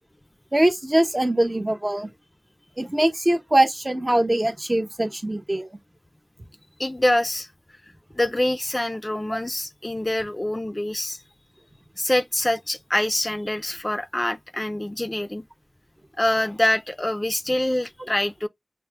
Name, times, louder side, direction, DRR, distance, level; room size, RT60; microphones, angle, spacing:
voice 1, 0.5-2.1 2.8-5.8, right 1 dB, 35° right, 0.8 m, -22 dB
voice 2, 6.8-7.5 8.1-11.2 12.0-15.4 16.2-18.5, left 1 dB, 35° left, 0.4 m, -25 dB
5.5 x 2.0 x 3.4 m
wide cardioid pair, 45°, 0 cm